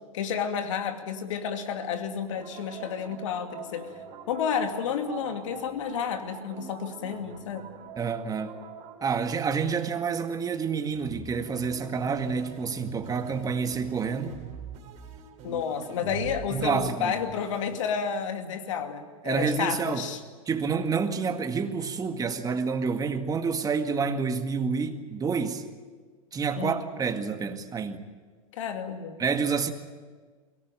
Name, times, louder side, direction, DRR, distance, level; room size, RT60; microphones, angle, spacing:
voice 1, 0.1-3.9 4.3-7.7 15.4-20.2 26.6-26.8 28.5-29.2, left 7 dB, 65° left, 2.5 m, -31 dB
sound 1, 2.2-10.4 10.9-18.3, right 6 dB, 40° right, 3.9 m, -44 dB
voice 2, 8.0-8.6 9.0-14.4 16.5-17.1 19.2-20.1 20.5-25.7 26.3-28.1 29.2-29.7, right 5 dB, 20° right, 1.9 m, -28 dB
23.0 x 18.5 x 9.1 m
hypercardioid pair, 95°, 17 cm